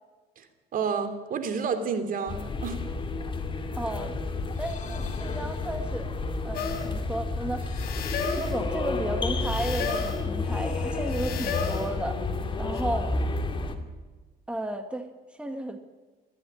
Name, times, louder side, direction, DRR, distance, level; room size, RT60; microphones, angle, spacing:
voice 1, 0.7-2.8, right 5 dB, 55° right, 8 dB, 3.0 m, -30 dB
sound 1, 2.3-13.7, left 3 dB, 30° left, 2.5 m, -31 dB
voice 2, 3.7-4.1 4.6-6.1 6.4-7.7 8.4-12.2 12.6-13.1 14.5-15.1 15.4-15.8, right 1 dB, 5° right, 6 dB, 1.8 m, -33 dB
sound 2, 4.5-6.2 7.5-9.2 10.4-12.3, left 5 dB, 45° left, 2.5 m, -45 dB
sound 3, 6.5-6.9 7.8-8.6 9.4-10.2 11.1-11.9 12.7-12.8, left 5 dB, 65° left, 4.4 m, -33 dB
19.5 x 14.0 x 10.0 m, 1.3 s
cardioid pair, 110°, 17 cm